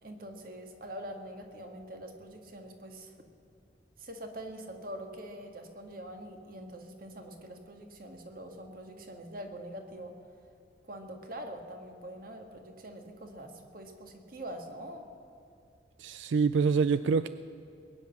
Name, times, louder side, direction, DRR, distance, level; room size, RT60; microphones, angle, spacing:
voice 1, 0.0-3.1 4.0-10.1 10.8-15.1, right 1 dB, 50° right, 4 dB, 1.8 m, -44 dB
voice 2, 16.0-17.3, right 5 dB, 85° right, 13 dB, 0.4 m, -26 dB
20.5 x 9.8 x 7.1 m, 2.5 s
head